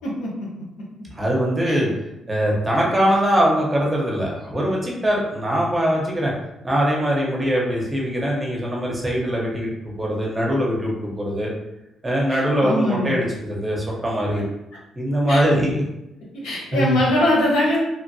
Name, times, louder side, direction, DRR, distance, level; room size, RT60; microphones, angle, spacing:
voice 1, 0.0-0.5 1.7-1.8 12.3-13.2 15.3-15.4 16.3-17.8, left 1 dB, 85° left, -5 dB, 1.0 m, -22 dB
voice 2, 1.1-1.9 2.3-6.3 6.6-11.5 12.0-14.4 15.0-15.8 16.7-17.0, equal, 20° right, -3 dB, 0.8 m, -22 dB
2.9 x 2.5 x 2.7 m, 0.89 s
cardioid pair, 90°, 0 cm